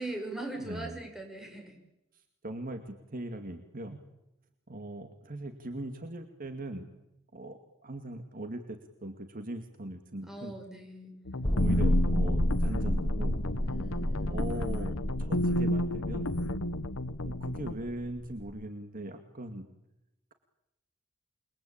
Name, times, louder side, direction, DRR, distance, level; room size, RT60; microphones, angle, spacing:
voice 1, 0.0-1.8 10.3-11.2 13.6-14.4, right 2 dB, ahead, 3 dB, 6.8 m, -40 dB
voice 2, 0.6-1.0 2.4-4.0 4.7-6.9 7.3-10.5 11.5-13.4 14.2-16.3 17.2-19.7, right 1 dB, 45° right, 7 dB, 2.1 m, -40 dB
sound 1, 11.3-17.7, left 1 dB, 85° left, 1.2 m, -32 dB
sound 2, 11.4-18.6, equal, 25° left, 2.1 m, -31 dB
28.5 x 22.5 x 8.7 m, 0.93 s
head